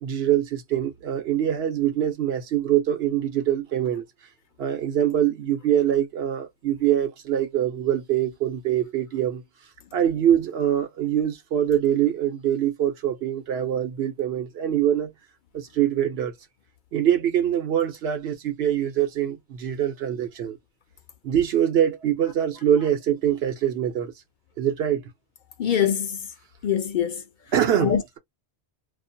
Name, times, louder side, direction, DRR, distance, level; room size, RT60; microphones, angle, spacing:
voice 1, 0.0-4.0 4.6-9.4 9.9-15.1 15.5-16.3 16.9-20.6 21.2-24.1 24.6-25.0 27.5-28.2, right 10 dB, 85° right, 1.0 m, -24 dB
voice 2, 25.6-26.2 26.6-27.2 27.8-28.2, left 9 dB, 60° left, 0.6 m, -23 dB
2.4 x 2.2 x 2.6 m
omnidirectional pair, 1.0 m